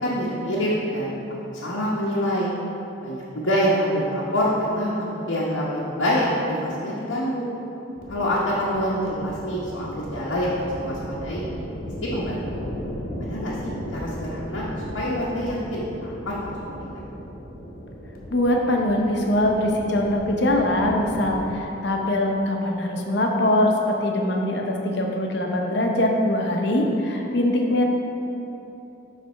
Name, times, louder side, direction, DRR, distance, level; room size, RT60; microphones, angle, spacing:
voice 1, 0.0-1.2 1.5-2.5 3.0-7.5 8.1-11.4 12.0-12.6 13.3-14.7 14.9-16.5 16.8-17.0, equal, 90° left, -7 dB, 0.9 m, -26 dB
sound 1, 7.9-21.4, equal, 45° left, 1.0 m, -36 dB
voice 2, 18.3-27.8, left 1 dB, 60° left, 1 dB, 0.7 m, -22 dB
7.5 x 3.3 x 5.6 m, 3.0 s
head